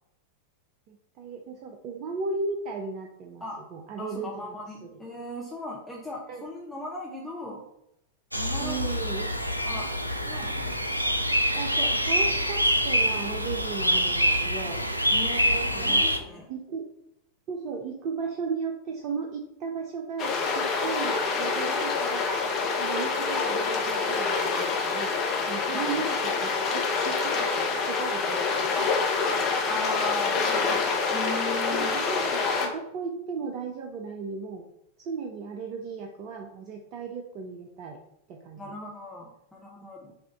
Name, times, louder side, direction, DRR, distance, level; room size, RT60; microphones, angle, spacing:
voice 1, 0.9-3.4 3.7-4.6 4.8-4.9 6.3-6.4 8.6-9.3 10.5-10.8 11.5-14.8 15.7-16.8 17.5-22.5 22.8-29.3 30.6-30.9 31.7-34.6 35.0-38.0 38.3-38.7, right 5 dB, 40° right, 2 dB, 0.5 m, -36 dB
voice 2, 4.0-7.6 8.3-8.8 9.7-9.9 10.2-10.7 15.1-16.5 25.7-26.0 29.7-30.5 31.1-31.9 38.6-40.1, left 1 dB, 5° left, -4 dB, 0.7 m, -37 dB
sound 1, 8.3-16.2, equal, 90° right, 0.4 m, -25 dB
sound 2, 20.2-32.7, left 4 dB, 35° left, 0.9 m, -26 dB
5.1 x 2.5 x 3.4 m, 0.79 s
figure-of-eight pair, 90°, 0 cm